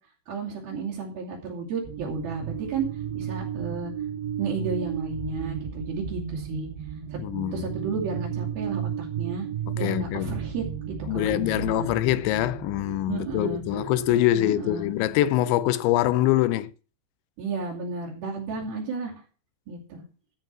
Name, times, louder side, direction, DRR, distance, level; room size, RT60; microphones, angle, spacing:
voice 1, 0.3-2.9 3.1-3.9 4.4-6.7 7.1-7.2 7.5-9.5 9.7-11.9 13.1-13.6 14.3-14.9 17.4-19.1 19.7-20.0, right 4 dB, 60° right, 4.3 m, -32 dB
sound 1, 1.8-14.1, right 8 dB, 75° right, 4.0 m, -34 dB
voice 2, 7.2-7.7 9.8-10.4 11.1-16.7, left 14 dB, 85° left, 3.0 m, -24 dB
14.0 x 5.3 x 7.5 m
omnidirectional pair, 5.2 m